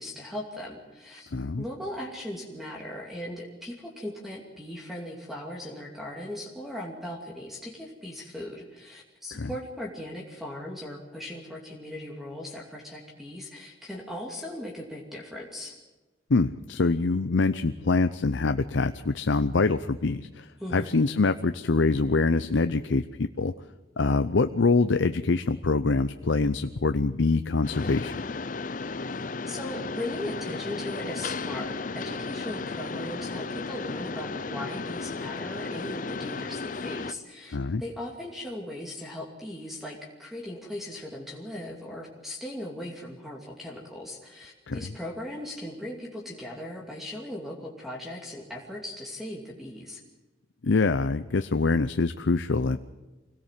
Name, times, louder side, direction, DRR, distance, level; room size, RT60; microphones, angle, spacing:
voice 1, 0.0-1.3 1.6-15.8 20.6-21.0 29.1-29.2 29.5-50.0, left 1 dB, ahead, -2 dB, 2.6 m, -38 dB
voice 2, 1.3-1.6 9.3-9.5 16.3-20.5 20.7-23.5 24.0-28.2 37.5-37.8 44.7-44.8 50.6-52.8, left 3 dB, 85° left, 10 dB, 0.7 m, -24 dB
Mechanisms, 27.6-37.1, left 4 dB, 45° left, 0.6 m, -34 dB
25.0 x 17.5 x 7.5 m, 1.2 s
head